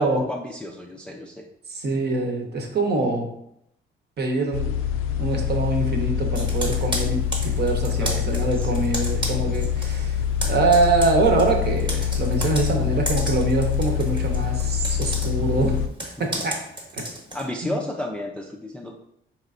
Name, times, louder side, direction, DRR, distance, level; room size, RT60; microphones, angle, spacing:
voice 1, 0.0-1.5 7.9-8.8 16.2-16.4 17.3-18.9, left 1 dB, 5° left, 1 dB, 0.3 m, -32 dB
voice 2, 1.7-3.3 4.2-4.8 5.2-15.8 16.2-16.6 16.9-17.0 17.6-17.8, right 3 dB, 50° right, 3 dB, 0.8 m, -24 dB
sound 1, 4.5-15.9, left 9 dB, 75° left, 0.4 m, -25 dB
Computer keyboard, 6.4-9.9 10.2-17.5, right 1 dB, 20° right, 0.9 m, -33 dB
4.2 x 3.1 x 2.5 m, 0.76 s
cardioid pair, 100°, 21 cm